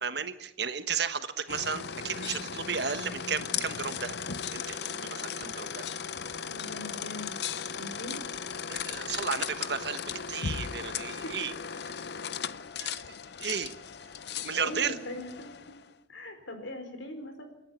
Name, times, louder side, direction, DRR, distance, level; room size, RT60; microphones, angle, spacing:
voice 1, 0.0-4.2 4.5-5.9 8.7-10.0 10.3-11.5 12.8-13.0 13.4-13.7 14.3-15.0, right 6 dB, 60° right, 10 dB, 1.3 m, -34 dB
sound 1, 1.5-15.9, left 7 dB, 60° left, 0.6 m, -37 dB
voice 2, 6.4-7.3 7.7-8.2 11.2-11.3 13.0-13.1 14.5-15.7 16.1-17.5, left 1 dB, 85° left, 6 dB, 4.4 m, -41 dB
28.5 x 10.5 x 8.8 m, 0.89 s
head